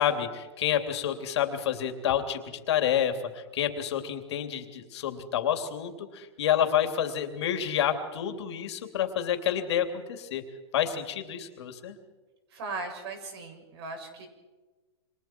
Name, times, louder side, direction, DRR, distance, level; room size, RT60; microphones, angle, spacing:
voice 1, 0.0-2.4 2.7-10.4 10.7-12.0, left 9 dB, 65° left, 6 dB, 3.2 m, -28 dB
voice 2, 12.5-14.3, right 3 dB, 60° right, 4 dB, 7.1 m, -38 dB
29.5 x 25.5 x 4.7 m, 1.2 s
hypercardioid pair, 135°, 15 cm